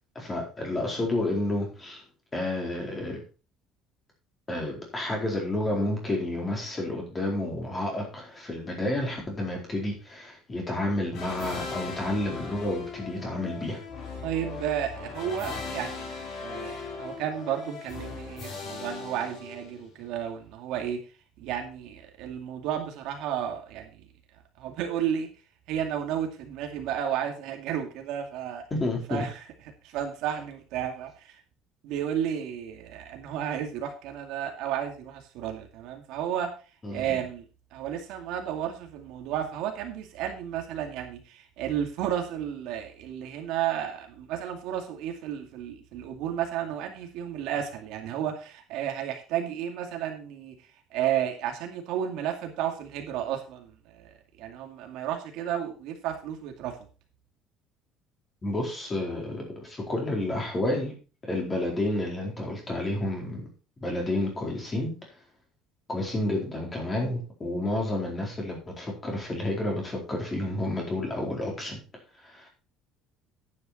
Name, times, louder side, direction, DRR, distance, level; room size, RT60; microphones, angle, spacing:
voice 1, 0.1-2.0 2.3-3.2 4.5-13.8 28.7-29.3 36.8-37.2 58.4-60.9 61.2-63.5 63.8-64.9 65.9-71.8 72.2-72.5, left 1 dB, 15° left, 0 dB, 4.3 m, -30 dB
sound 1, 11.1-20.0, left 4 dB, 50° left, 4.4 m, -38 dB
voice 2, 14.2-21.0 21.4-24.0 24.6-25.3 25.7-28.6 29.1-29.4 29.8-31.4 31.8-36.5 36.9-37.4 37.7-50.6 50.9-54.1 54.4-56.8, right 9 dB, 65° right, 4 dB, 2.4 m, -32 dB
10.5 x 9.3 x 4.3 m, 0.34 s
cardioid pair, 165°, 0 cm